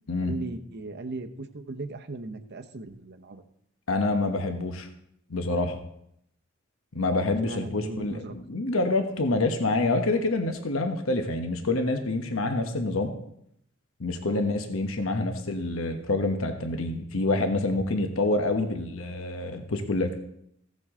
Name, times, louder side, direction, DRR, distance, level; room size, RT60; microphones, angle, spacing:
voice 1, 0.2-3.4 7.1-8.3 14.2-14.4, right 2 dB, 55° right, 7 dB, 0.8 m, -38 dB
voice 2, 3.9-4.9 5.3-5.8 6.9-13.1 14.0-20.1, left 2 dB, 80° left, 6 dB, 1.1 m, -27 dB
15.5 x 7.6 x 3.7 m, 0.74 s
head